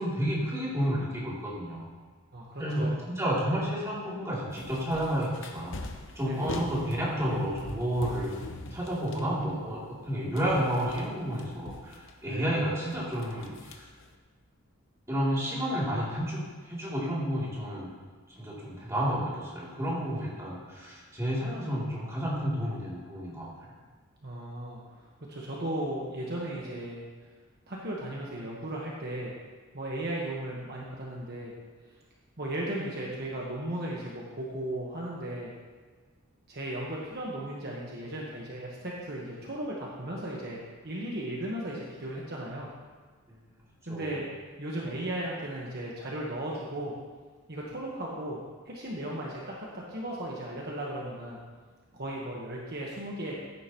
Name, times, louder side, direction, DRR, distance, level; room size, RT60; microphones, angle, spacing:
voice 1, 0.0-1.9 2.6-2.9 3.2-5.8 6.1-8.3 8.7-9.8 10.1-13.9 15.1-16.4 16.7-17.9 18.4-23.5 43.9-44.2, equal, 15° right, -7 dB, 3.0 m, -31 dB
voice 2, 2.3-3.0 6.2-6.5 12.2-12.5 24.2-27.0 27.7-29.3 29.7-31.5 32.4-35.5 36.5-40.6 40.8-42.7 43.9-44.3 44.6-46.9 47.5-51.4 51.9-53.3, right 1 dB, 50° right, -4 dB, 1.3 m, -36 dB
sound 1, 4.5-10.1 10.3-12.4 12.9-14.1, left 2 dB, 55° left, 0.9 m, -42 dB
15.0 x 10.0 x 3.1 m, 1.4 s
head